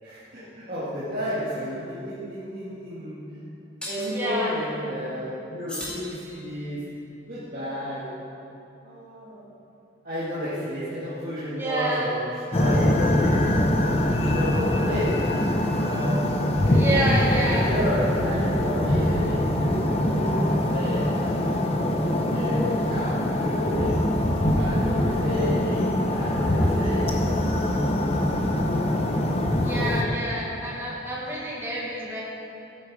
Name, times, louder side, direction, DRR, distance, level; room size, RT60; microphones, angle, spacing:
voice 1, 0.0-3.2 3.9-6.8 7.3-8.1 8.8-9.4 10.0-12.2 12.6-13.8 14.2-15.2 15.8-16.2 16.6-17.0 17.5-21.1 22.2-24.0 24.5-27.3, equal, 45° right, -12 dB, 2.2 m, -32 dB
sound 1, 1.8-2.0 3.8-4.2 5.7-6.8, left 1 dB, 5° left, 2.1 m, -37 dB
voice 2, 4.1-4.6 11.6-12.1 16.7-17.7 29.6-32.2, right 1 dB, 10° right, -5 dB, 1.6 m, -28 dB
sound 2, 12.5-30.0, left 1 dB, 30° left, 0.8 m, -23 dB
13.0 x 8.4 x 4.9 m, 2.8 s
head